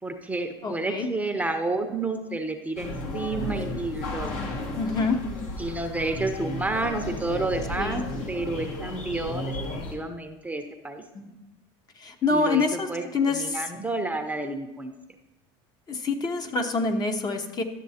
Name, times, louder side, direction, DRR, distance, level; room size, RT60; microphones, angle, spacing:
voice 1, 0.0-4.3 5.6-11.0 12.3-14.9, right 2 dB, 10° right, 6 dB, 0.7 m, -30 dB
voice 2, 0.6-1.1 4.8-5.3 7.8-8.0 11.1-11.3 12.0-13.6 15.9-17.6, left 3 dB, 30° left, 5 dB, 0.9 m, -26 dB
sound 1, 2.8-10.0, left 1 dB, 70° left, 1.6 m, -33 dB
11.5 x 7.0 x 2.8 m, 1.0 s
supercardioid pair, 105°, 13 cm